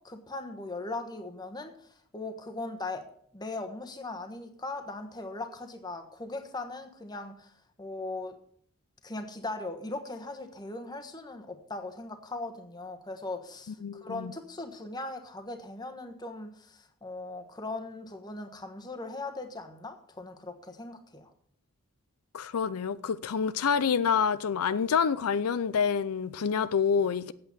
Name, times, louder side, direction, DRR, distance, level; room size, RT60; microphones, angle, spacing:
voice 1, 0.0-8.4 9.0-21.3, left 2 dB, 20° left, 1.2 m, -39 dB
voice 2, 13.8-14.3 22.3-27.3, left 6 dB, 85° left, 0.5 m, -27 dB
8.5 x 7.7 x 8.3 m
head